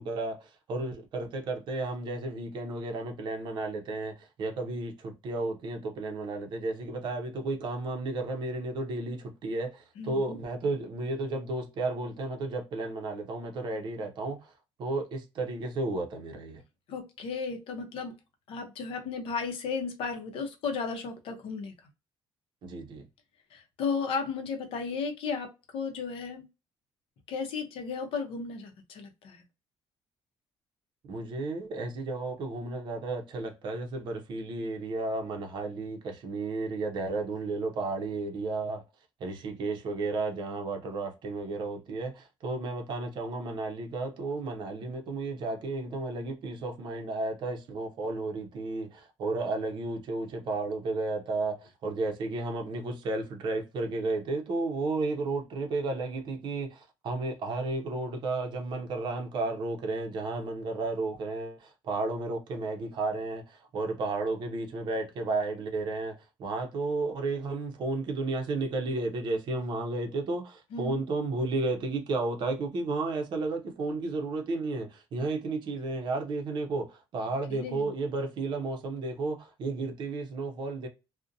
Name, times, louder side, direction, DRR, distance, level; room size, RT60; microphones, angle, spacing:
voice 1, 0.0-14.5 14.8-16.6 22.6-23.0 31.1-38.8 39.2-80.9, right 3 dB, 50° right, 0.5 m, -33 dB
voice 2, 10.0-10.4 16.9-18.1 18.5-21.7 23.5-26.5 27.3-29.4 70.7-71.0 77.5-77.9, left 5 dB, 65° left, 0.6 m, -34 dB
2.5 x 2.1 x 2.5 m
cardioid pair, 175°, 10 cm